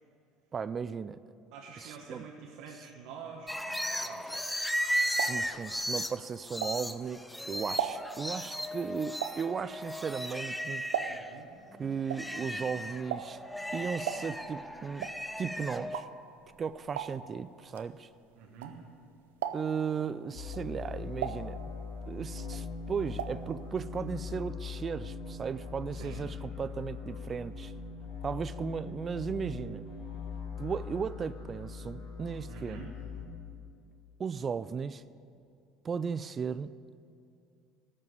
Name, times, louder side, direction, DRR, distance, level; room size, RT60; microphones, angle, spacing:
voice 1, 0.5-1.2 1.8-2.2 5.0-11.2 11.8-13.4 13.7-15.1 15.4-16.1 16.6-18.1 19.5-21.6 22.1-27.7 28.2-29.8 30.6-32.8 34.2-35.0 35.8-36.7, right 6 dB, 35° right, 15 dB, 0.3 m, -36 dB
voice 2, 1.5-4.2 11.1-11.5 18.4-18.8 25.9-26.2 32.5-32.9, right 6 dB, 70° right, -1 dB, 1.2 m, -47 dB
sound 1, 3.5-11.3 11.7-16.0, equal, 5° left, 0.6 m, -36 dB
sound 2, 4.6-7.2 7.5-11.5 11.7-19.0 19.3-19.9 20.4-22.1 22.4-23.5 23.7-23.8 24.1-24.2, right 9 dB, 85° right, 0.6 m, -38 dB
sound 3, 20.3-33.3, left 5 dB, 70° left, 3.3 m, -41 dB
13.5 x 5.4 x 9.5 m, 2.4 s
hypercardioid pair, 75°, 0 cm